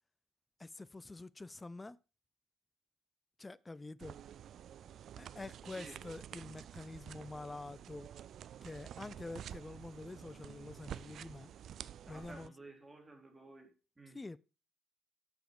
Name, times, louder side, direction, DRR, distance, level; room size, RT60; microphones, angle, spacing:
voice 1, 0.6-2.0 3.4-4.2 5.2-8.1 8.6-11.5 12.1-12.5 14.1-14.4, left 2 dB, 20° left, 0.4 m, -47 dB
sound 1, 4.0-12.5, right 10 dB, 55° right, 0.4 m, -50 dB
voice 2, 12.1-13.7 14.0-14.2, right 2 dB, 20° right, 3.4 m, -54 dB
8.9 x 7.2 x 5.2 m
figure-of-eight pair, 50°, 0 cm